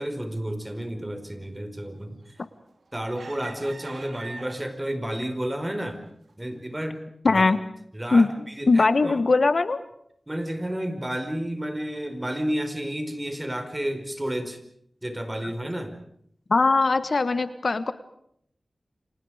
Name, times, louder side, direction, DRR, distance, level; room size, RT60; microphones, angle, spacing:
voice 1, 0.0-2.2 2.9-6.0 6.4-7.0 7.3-7.4 7.9-9.2 10.3-14.6 15.0-15.9, right 1 dB, 20° right, 8 dB, 4.8 m, -31 dB
sound 1, 2.4-2.7 3.1-4.9 5.5-5.7 6.1-6.3, right 3 dB, 90° right, 3.2 m, -42 dB
voice 2, 7.2-7.6 8.1-8.3 8.7-9.8 16.5-17.9, left 3 dB, 65° left, 12 dB, 1.4 m, -20 dB
29.5 x 26.5 x 5.0 m, 0.70 s
wide cardioid pair, 75°, 0 cm